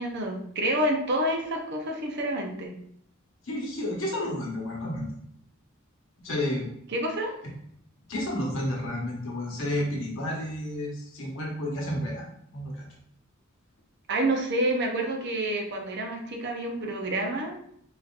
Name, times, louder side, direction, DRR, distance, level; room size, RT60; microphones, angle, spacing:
voice 1, 0.0-2.7 6.9-7.3 14.1-17.6, right 1 dB, 55° right, 2 dB, 0.6 m, -28 dB
voice 2, 3.4-5.1 6.2-6.7 8.1-12.9, left 1 dB, 65° left, -3 dB, 1.1 m, -31 dB
4.9 x 2.7 x 2.4 m, 0.68 s
head